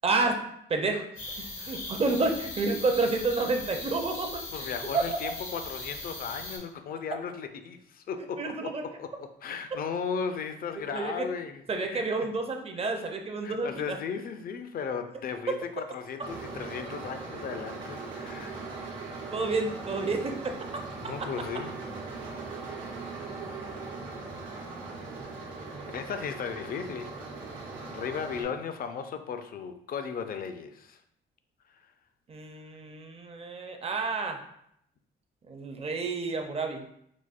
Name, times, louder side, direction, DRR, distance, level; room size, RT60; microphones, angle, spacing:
voice 1, 0.0-1.1 1.4-4.3 4.9-5.0 8.4-8.8 10.9-11.3 11.7-14.0 19.3-20.6 32.3-34.4 35.5-36.8, right 3 dB, 30° right, 4 dB, 0.5 m, -29 dB
sound 1, 1.2-6.6, left 2 dB, 90° left, 1.0 m, -39 dB
voice 2, 4.5-12.0 12.8-12.9 13.4-18.6 21.0-21.8 25.9-27.1 27.5-31.0 31.7-31.9, left 6 dB, 50° left, 8 dB, 0.4 m, -36 dB
sound 2, 16.2-28.4, right 3 dB, 90° right, 0.9 m, -40 dB
4.9 x 2.0 x 2.4 m, 0.73 s
cardioid pair, 90°, 20 cm